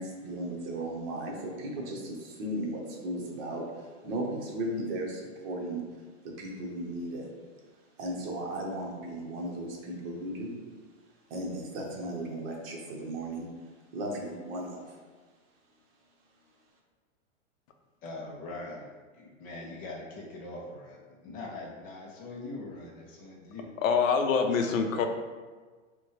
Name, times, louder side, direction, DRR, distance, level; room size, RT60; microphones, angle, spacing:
voice 1, 0.0-5.8 6.2-7.3 8.0-10.6 11.3-13.5 13.9-15.0, right 1 dB, 45° right, 0 dB, 1.0 m, -36 dB
voice 2, 18.0-23.7, left 2 dB, 25° left, -1 dB, 0.4 m, -42 dB
voice 3, 23.8-25.1, left 5 dB, 90° left, 5 dB, 0.6 m, -25 dB
5.3 x 2.2 x 3.1 m, 1.4 s
hypercardioid pair, 130°, 39 cm